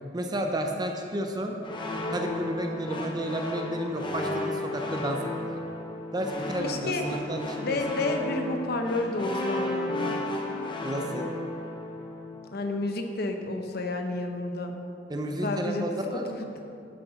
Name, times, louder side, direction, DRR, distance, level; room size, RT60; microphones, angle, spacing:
voice 1, 0.1-1.6 2.1-5.6 6.1-7.8 10.8-11.3 15.1-16.2, right 1 dB, 20° right, 3 dB, 0.5 m, -32 dB
sound 1, 1.6-12.5, left 1 dB, 25° left, 0.9 m, -33 dB
voice 2, 6.6-7.0 7.6-10.0 12.5-14.7 15.4-16.0 16.3-16.5, left 2 dB, 55° left, 4 dB, 0.8 m, -30 dB
10.0 x 7.7 x 4.0 m, 2.5 s
head